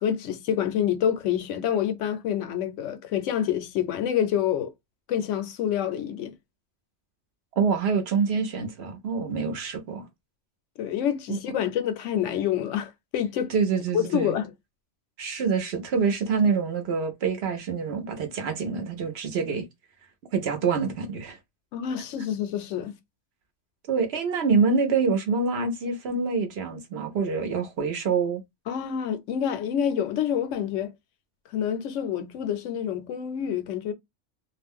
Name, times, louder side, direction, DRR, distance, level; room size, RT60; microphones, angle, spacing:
voice 1, 0.0-4.7 5.1-6.3 10.8-13.5 13.9-14.5 21.7-23.0 28.7-30.9 31.5-33.9, left 9 dB, 80° left, 0.9 m, -27 dB
voice 2, 7.6-10.1 11.3-11.4 13.5-14.4 15.2-19.6 20.3-21.4 23.9-28.4, right 5 dB, 65° right, 0.9 m, -26 dB
2.4 x 2.1 x 3.5 m
omnidirectional pair, 1.3 m